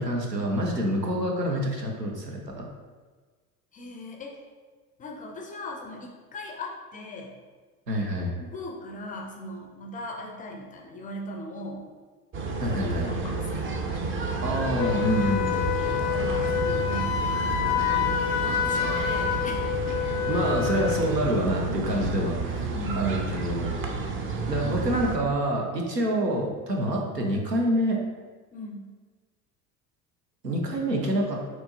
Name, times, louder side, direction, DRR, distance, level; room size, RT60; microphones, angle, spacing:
voice 1, 0.0-2.7 7.9-8.3 12.6-13.1 14.4-15.7 20.3-23.7 24.5-28.0 30.4-31.4, right 1 dB, 90° right, 0 dB, 0.8 m, -27 dB
voice 2, 3.7-4.4 5.0-7.4 8.4-11.9 12.6-13.7 15.8-17.5 18.3-19.7 22.7-23.2 28.5-28.8, left 1 dB, 20° left, 1 dB, 0.4 m, -38 dB
sound 1, 12.3-25.2, right 3 dB, 25° right, 0.6 m, -31 dB
Wind instrument woodwind instrument, 14.8-21.1, left 10 dB, 70° left, 0.5 m, -27 dB
6.1 x 2.9 x 2.8 m, 1.4 s
figure-of-eight pair, 65°, 47 cm